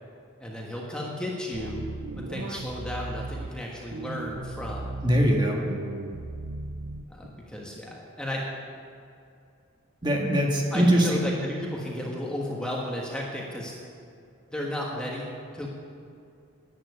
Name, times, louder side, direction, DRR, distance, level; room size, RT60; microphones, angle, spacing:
voice 1, 0.4-1.9 2.2-5.0 7.1-8.5 10.7-13.7 14.5-15.7, left 1 dB, 5° left, -3 dB, 1.4 m, -33 dB
sound 1, 1.5-3.5 3.9-5.3 5.7-7.3, right 2 dB, 70° right, 0.7 m, -36 dB
voice 2, 5.0-5.6 10.0-11.2, equal, 20° right, -1 dB, 1.7 m, -22 dB
11.5 x 9.0 x 9.8 m, 2.4 s
head